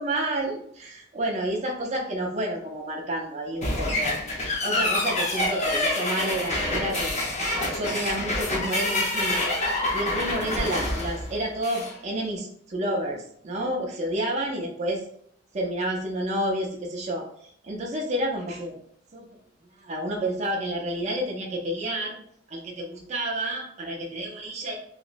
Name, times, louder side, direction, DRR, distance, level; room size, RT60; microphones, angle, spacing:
voice 1, 0.0-4.2 4.6-9.5 9.9-15.0 15.5-18.8 19.1-19.3 19.8-22.2 22.5-24.8, right 1 dB, 35° right, -1 dB, 0.5 m, -30 dB
sound 1, 3.6-11.9, left 1 dB, 35° left, 0.8 m, -27 dB
3.1 x 2.9 x 2.5 m, 0.67 s
head